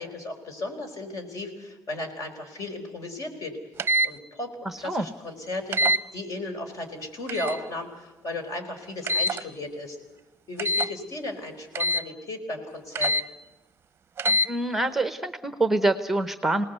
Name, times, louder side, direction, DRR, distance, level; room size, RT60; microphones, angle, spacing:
voice 1, 0.0-3.6 4.0-5.8 6.1-10.0 10.5-13.1, left 2 dB, 50° left, 6 dB, 4.6 m, -35 dB
sound 1, 3.8-4.1 5.7-6.0 7.3-7.6 9.1-9.4 10.6-10.9 11.8-12.0 13.0-13.2 14.2-14.5, equal, 35° right, 0.7 m, -24 dB
voice 2, 4.6-5.1 14.4-16.6, right 2 dB, 5° right, 10 dB, 0.9 m, -25 dB
27.0 x 19.0 x 8.1 m, 1.1 s
cardioid pair, 155°, 7 cm